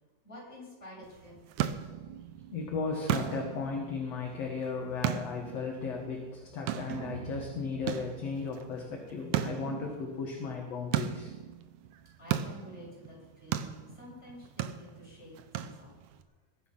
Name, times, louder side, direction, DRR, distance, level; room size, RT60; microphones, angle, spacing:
voice 1, 0.2-1.3 12.2-15.9, left 1 dB, 15° left, -5 dB, 7.3 m, -49 dB
sound 1, 1.0-16.2, right 11 dB, 75° right, 1.8 m, -37 dB
voice 2, 2.5-11.3, left 4 dB, 50° left, 0 dB, 2.4 m, -36 dB
20.5 x 11.0 x 5.7 m, 1.2 s
omnidirectional pair, 4.5 m